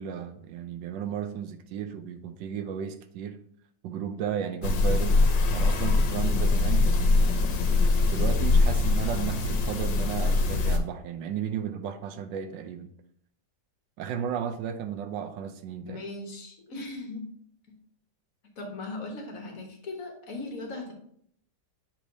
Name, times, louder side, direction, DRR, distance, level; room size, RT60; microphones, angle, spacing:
voice 1, 0.0-3.4 3.8-5.2 5.5-7.4 8.1-12.9 14.0-16.0, right 8 dB, 85° right, 10 dB, 1.3 m, -34 dB
sound 1, 4.6-10.8, left 3 dB, 80° left, 1.5 m, -23 dB
voice 2, 15.8-17.3 17.7-17.8 18.6-20.9, left 2 dB, 55° left, 2 dB, 1.4 m, -38 dB
7.3 x 4.9 x 2.7 m, 0.65 s
omnidirectional pair, 1.9 m